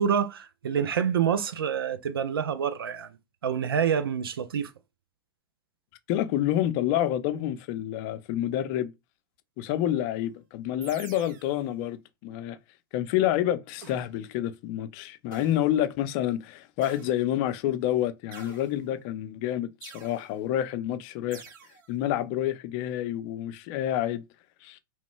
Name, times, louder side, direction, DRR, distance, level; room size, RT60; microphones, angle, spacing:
voice 1, 0.0-3.1 3.4-4.7, right 8 dB, 90° right, 0.4 m, -27 dB
voice 2, 6.1-8.9 9.6-12.6 12.9-21.4 21.9-24.2 24.6-24.8, left 12 dB, 50° left, 0.5 m, -28 dB
sound 1, 10.8-11.7 13.8-14.3 15.3-15.9 16.8-17.5 18.3-19.1 19.8-20.4 21.3-21.9, right 7 dB, 60° right, 0.7 m, -48 dB
3.0 x 2.1 x 3.1 m
hypercardioid pair, 110°, 12 cm